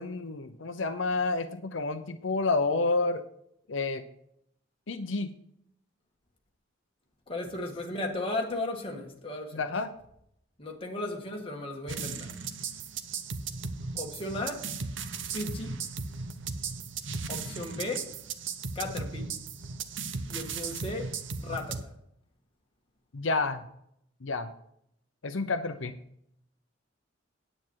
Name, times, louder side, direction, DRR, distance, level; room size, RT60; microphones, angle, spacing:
voice 1, 0.0-3.2 3.7-4.0 4.9-5.3 9.5-9.9 23.1-23.6 24.2-24.5 25.2-25.9, left 3 dB, 85° left, 0.7 m, -29 dB
voice 2, 7.3-9.6 10.6-12.3 13.9-14.7 15.3-15.8 17.3-18.1 18.8-19.3 20.3-21.9, left 2 dB, 30° left, 2.0 m, -35 dB
sound 1, 11.9-21.8, right 5 dB, 70° right, 0.9 m, -36 dB
9.6 x 8.8 x 4.7 m
head